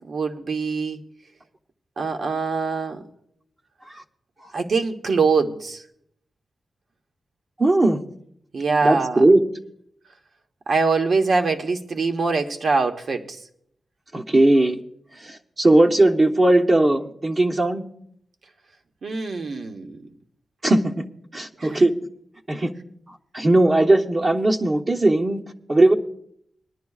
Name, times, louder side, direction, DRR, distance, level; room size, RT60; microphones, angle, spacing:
voice 1, 0.1-1.0 2.0-3.0 4.5-5.8 8.5-9.2 10.7-13.4 19.0-20.0 21.6-21.8, right 4 dB, 65° right, 1.0 m, -23 dB
voice 2, 7.6-8.0 8.8-9.4 14.1-14.8 15.2-17.8 20.6-21.0 21.3-21.9 22.5-22.7 23.3-25.4 25.7-25.9, right 2 dB, 35° right, 0.8 m, -18 dB
23.0 x 11.0 x 2.4 m
wide cardioid pair, 105°, 0 cm